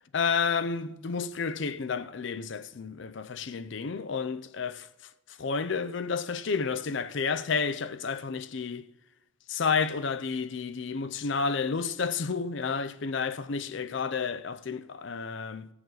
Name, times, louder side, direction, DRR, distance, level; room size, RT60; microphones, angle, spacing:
voice 1, 0.1-4.9 5.4-8.9 9.5-15.7, left 5 dB, 60° left, 0.5 m, -31 dB
17.0 x 7.0 x 4.0 m
head